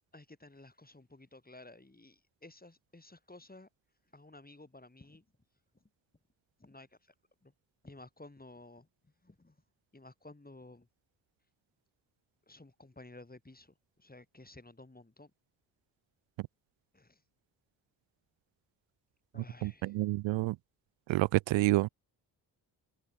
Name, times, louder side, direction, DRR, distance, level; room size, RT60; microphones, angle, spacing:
voice 1, 0.1-3.7 4.0-5.3 5.7-5.8 6.6-7.1 7.4-7.5 7.8-9.6 9.9-10.9 12.5-15.3 16.9-17.2 19.3-20.0, left 2 dB, 20° left, 7.3 m, -54 dB
voice 2, 19.6-20.6 21.1-21.9, right 19 dB, 90° right, 0.6 m, -28 dB
supercardioid pair, 55°, 44 cm